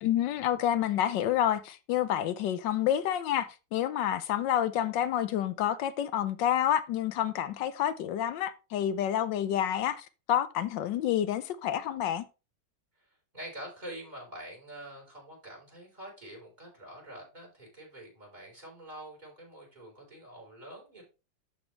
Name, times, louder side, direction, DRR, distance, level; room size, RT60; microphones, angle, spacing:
voice 1, 0.0-12.3, left 11 dB, 85° left, 1.4 m, -29 dB
voice 2, 13.0-21.0, right 1 dB, 25° right, 4.3 m, -46 dB
12.0 x 4.4 x 3.2 m
omnidirectional pair, 2.0 m